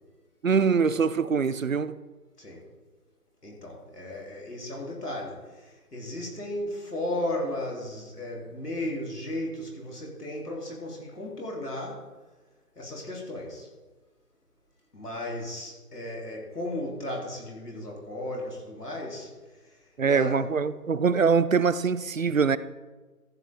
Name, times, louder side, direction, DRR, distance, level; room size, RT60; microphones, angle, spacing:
voice 1, 0.4-2.0 20.0-22.6, right 5 dB, 60° right, 0.5 m, -23 dB
voice 2, 3.4-12.0 12.8-13.7 14.9-19.3 19.6-19.7 20.0-20.4, left 1 dB, 75° left, 3.6 m, -35 dB
14.5 x 7.7 x 3.7 m
figure-of-eight pair, 170°, 47 cm